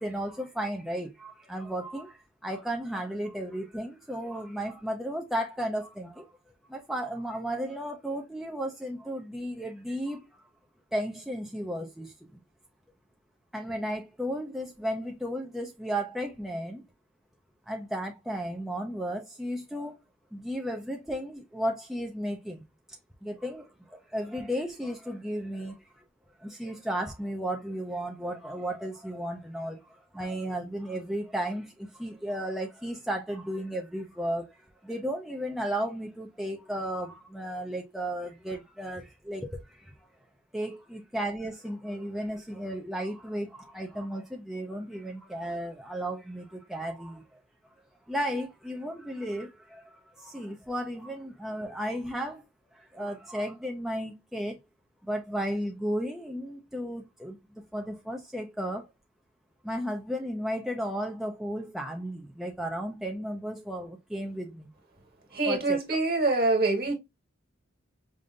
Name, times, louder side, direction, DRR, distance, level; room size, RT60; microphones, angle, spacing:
voice 1, 0.0-2.1 2.4-6.1 6.7-10.2 10.9-12.1 13.5-16.8 17.7-19.9 20.3-22.6 23.2-23.6 24.1-25.7 26.6-29.8 30.2-31.7 32.0-34.4 34.9-39.5 40.5-43.5 43.7-46.4 46.7-47.2 48.1-49.5 50.3-52.4 52.9-54.5 55.1-57.3 57.7-58.8 59.7-64.5 65.5-65.8, equal, ahead, 0.5 m, -34 dB
voice 2, 65.3-66.9, right 3 dB, 50° right, 1.5 m, -25 dB
5.1 x 2.6 x 2.4 m
head